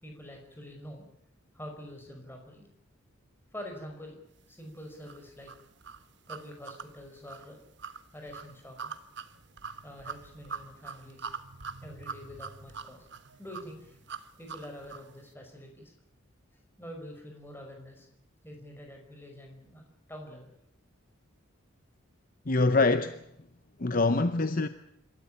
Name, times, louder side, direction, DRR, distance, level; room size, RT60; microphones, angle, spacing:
voice 1, 0.0-1.0 1.5-2.7 3.5-4.2 4.5-5.5 6.3-7.6 8.1-8.9 9.8-11.3 11.8-13.1 13.4-14.0 14.4-15.9 16.8-18.1 18.4-20.5, equal, 10° left, 5.1 m, -46 dB
sound 1, 5.1-15.1, right 5 dB, 55° right, 1.2 m, -43 dB
voice 2, 22.5-23.2 23.8-24.7, left 3 dB, 40° left, 0.8 m, -24 dB
26.5 x 13.5 x 10.0 m
head